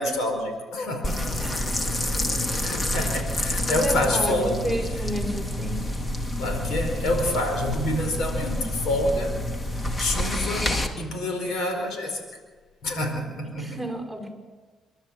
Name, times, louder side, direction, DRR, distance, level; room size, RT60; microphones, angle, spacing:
voice 1, 0.0-1.7 2.6-4.5 6.4-9.4 9.7-12.2 12.8-13.8, left 1 dB, 80° left, 4 dB, 4.9 m, -27 dB
sound 1, 1.0-10.9, left 1 dB, 30° left, 2.3 m, -28 dB
voice 2, 1.4-1.8 2.2-2.6 3.0-3.1 3.7-5.9 13.6-14.3, right 1 dB, 5° left, 1 dB, 5.8 m, -31 dB
28.0 x 12.5 x 7.5 m, 1.4 s
cardioid pair, 90°, 0 cm